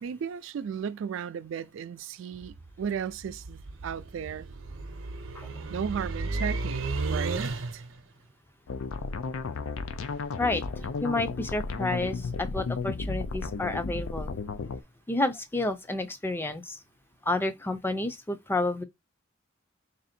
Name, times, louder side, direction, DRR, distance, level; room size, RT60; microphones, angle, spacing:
voice 1, 0.0-4.5 5.7-7.8, right 7 dB, 70° right, 0.3 m, -35 dB
sound 1, 2.3-8.0, right 3 dB, 85° right, 0.7 m, -34 dB
sound 2, 8.7-14.8, left 4 dB, 90° left, 0.5 m, -33 dB
voice 2, 11.0-14.3 15.1-16.8 17.3-18.8, left 2 dB, 10° left, 0.4 m, -30 dB
3.4 x 2.6 x 4.2 m
head